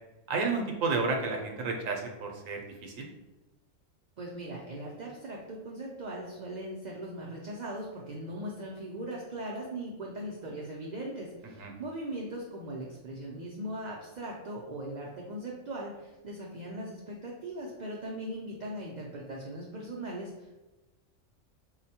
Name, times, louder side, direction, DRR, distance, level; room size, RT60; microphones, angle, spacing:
voice 1, 0.3-3.1 11.6-11.7, right 4 dB, 85° right, 2 dB, 1.0 m, -31 dB
voice 2, 4.2-20.6, right 1 dB, 65° right, -2 dB, 0.4 m, -39 dB
4.7 x 2.1 x 2.8 m, 1.1 s
omnidirectional pair, 1.3 m